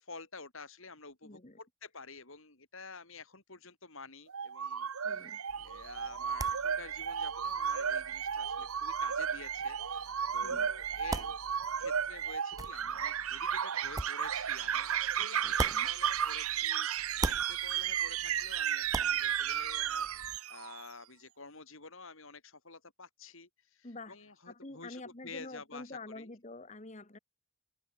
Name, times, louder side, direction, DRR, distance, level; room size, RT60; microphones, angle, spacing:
voice 1, 0.0-5.4 5.6-11.3 11.8-26.3, left 4 dB, 60° left, 4.3 m, -50 dB
voice 2, 1.2-1.6 5.0-5.4 10.4-10.7 15.2-15.9 23.8-24.2 24.5-27.2, left 2 dB, 30° left, 1.4 m, -47 dB
sound 1, 4.3-20.9, right 8 dB, 75° right, 0.9 m, -34 dB
sound 2, 5.5-16.7 17.0-20.4, right 2 dB, 15° right, 1.4 m, -43 dB
head